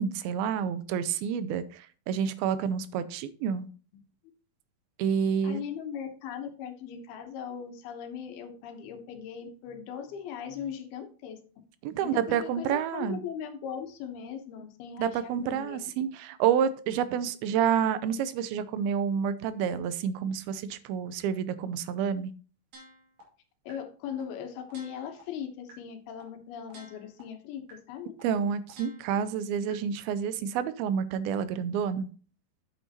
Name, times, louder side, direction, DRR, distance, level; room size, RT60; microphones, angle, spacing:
voice 1, 0.0-3.7 5.0-5.6 11.8-13.2 15.0-22.3 28.2-32.1, right 8 dB, 90° right, 13 dB, 2.5 m, -29 dB
voice 2, 5.4-11.4 12.0-15.8 23.7-28.1, left 8 dB, 85° left, 5 dB, 3.0 m, -39 dB
sound 1, 22.7-23.2 23.7-23.8 24.2-24.3 24.7-25.2 25.7-25.8 26.2-26.3 26.7-27.2 27.7-27.8 28.2-28.3 28.7-29.2 29.7-29.8, right 2 dB, 50° right, 3.2 m, -51 dB
8.6 x 8.2 x 2.8 m, 0.40 s
omnidirectional pair, 4.3 m